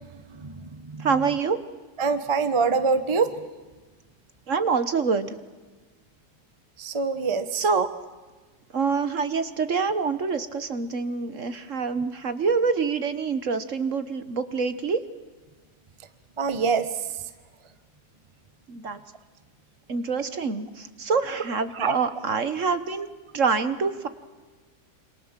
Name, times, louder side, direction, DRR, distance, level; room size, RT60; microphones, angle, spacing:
voice 1, 1.0-1.6 4.5-5.3 7.5-7.9 8.7-15.0 18.7-19.0 19.9-23.1 23.3-24.1, right 5 dB, 50° right, 12 dB, 1.5 m, -26 dB
voice 2, 2.0-3.3 6.8-7.5 16.4-16.9 21.8-21.9, right 5 dB, 20° right, 11 dB, 1.1 m, -23 dB
27.5 x 26.0 x 7.5 m, 1.3 s
omnidirectional pair, 1.7 m